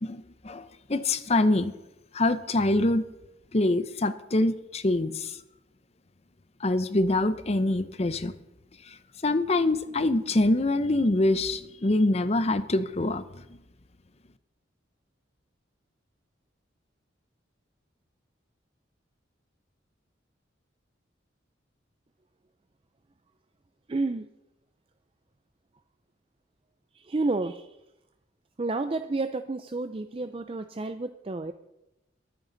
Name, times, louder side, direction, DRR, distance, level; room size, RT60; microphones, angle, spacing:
voice 1, 0.0-1.7 2.1-3.0 3.5-5.4 6.6-8.3 8.9-9.0 9.2-13.2, left 2 dB, 35° left, 13 dB, 0.7 m, -25 dB
voice 2, 23.9-24.3 27.0-27.7 28.6-31.5, right 3 dB, 30° right, 9 dB, 0.4 m, -30 dB
22.5 x 9.3 x 4.0 m, 0.92 s
head